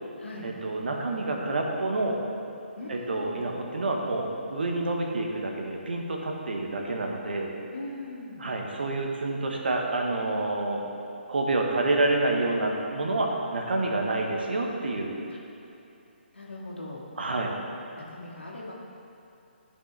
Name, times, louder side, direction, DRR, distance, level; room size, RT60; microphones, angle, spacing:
voice 1, 0.4-2.2 2.9-7.5 8.4-10.8 11.3-15.1 17.2-17.5, right 2 dB, 60° right, 1 dB, 1.3 m, -28 dB
voice 2, 2.8-3.4 7.6-8.4 15.3-15.4 16.3-17.1 18.0-18.7, left 2 dB, 80° left, -3 dB, 2.0 m, -40 dB
13.5 x 5.4 x 3.5 m, 2.9 s
figure-of-eight pair, 140°, 6 cm